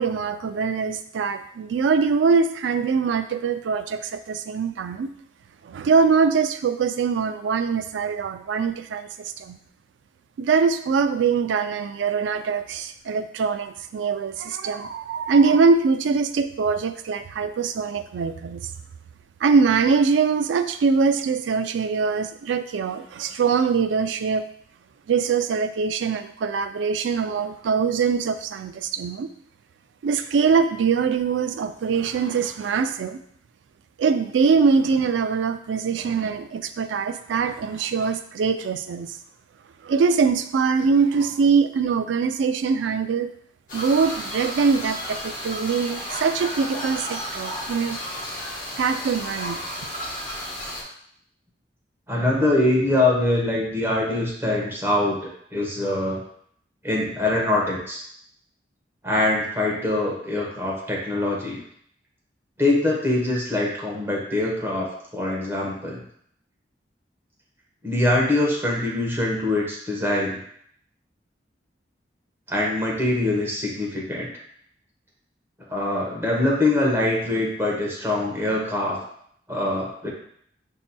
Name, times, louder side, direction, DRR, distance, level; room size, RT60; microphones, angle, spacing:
voice 1, 0.0-5.1 5.6-9.6 10.4-18.6 19.4-24.5 25.1-29.3 30.0-33.2 34.0-39.2 39.8-43.3 43.7-48.0 48.8-49.6, right 5 dB, 85° right, 10 dB, 0.3 m, -23 dB
sound 1, 43.7-50.8, equal, 50° left, 1.2 m, -33 dB
voice 2, 52.1-56.2 56.8-58.0 59.0-61.6 62.6-66.0 67.8-70.4 72.5-74.3 75.7-79.0 79.5-80.1, left 2 dB, 15° right, -4 dB, 1.0 m, -23 dB
7.0 x 2.8 x 2.2 m, 0.66 s
head